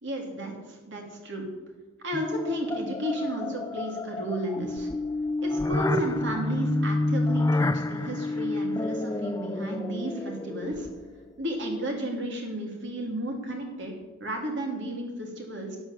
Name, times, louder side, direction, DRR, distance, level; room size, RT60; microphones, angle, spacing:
voice 1, 0.0-1.5 2.0-4.9 5.4-10.9 11.4-13.9 14.2-15.8, right 1 dB, 55° right, 1 dB, 3.4 m, -33 dB
sound 1, 2.1-11.2, left 2 dB, 15° left, 0.3 m, -29 dB
12.5 x 8.8 x 8.6 m, 1.2 s
head